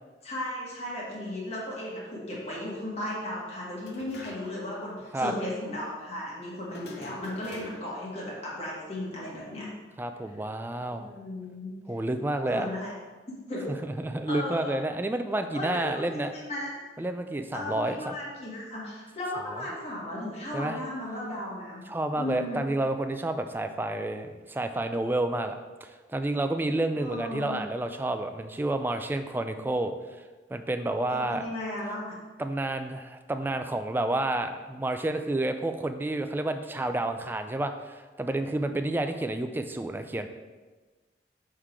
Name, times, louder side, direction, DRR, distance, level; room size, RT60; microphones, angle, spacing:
voice 1, 0.2-9.7 10.9-11.7 12.5-12.9 13.5-13.7 14.3-14.8 15.5-16.7 17.5-21.8 22.2-22.6 27.0-27.6 31.1-32.1, left 1 dB, 35° left, -5 dB, 1.7 m, -35 dB
sound 1, 3.8-4.7 5.0-5.1 6.7-8.1, left 1 dB, 65° left, 0.8 m, -46 dB
voice 2, 10.0-11.1 11.9-12.7 13.8-16.3 17.0-18.2 19.5-19.6 20.5-20.8 21.9-29.9 30.5-31.4 32.4-40.3, right 2 dB, 10° right, 7 dB, 0.3 m, -30 dB
6.4 x 3.7 x 4.6 m, 1.3 s
head